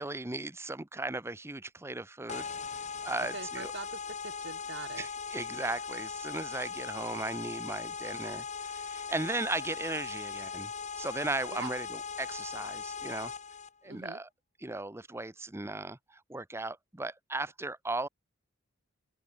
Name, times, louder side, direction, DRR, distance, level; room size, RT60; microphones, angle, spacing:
voice 1, 0.0-2.5 3.0-3.7 5.0-10.7 11.0-13.3 13.8-14.3 14.6-18.1, right 2 dB, 10° right, 0.8 m, -37 dB
sound 1, 2.3-13.7, left 5 dB, 35° left, 2.8 m, -39 dB
voice 2, 3.3-5.1 11.5-11.7 13.8-14.2, right 4 dB, 60° right, 1.7 m, -43 dB
head